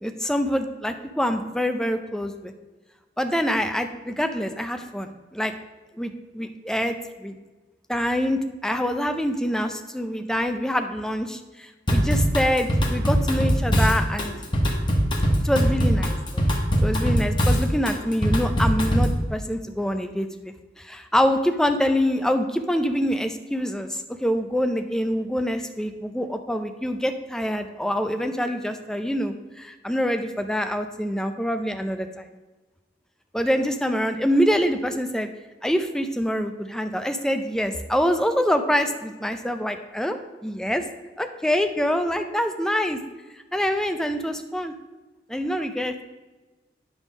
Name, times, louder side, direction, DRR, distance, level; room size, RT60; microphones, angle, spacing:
voice 1, 0.0-2.5 3.2-5.5 6.0-6.9 7.2-7.4 7.9-14.3 15.4-16.5 16.8-32.3 33.3-35.3 35.6-40.8 41.2-43.0 43.5-44.7 45.3-46.0, equal, 5° left, 6 dB, 0.4 m, -25 dB
Drum kit / Drum, 11.9-19.2, equal, 25° left, 1.1 m, -21 dB
9.3 x 3.5 x 6.2 m, 1.2 s
head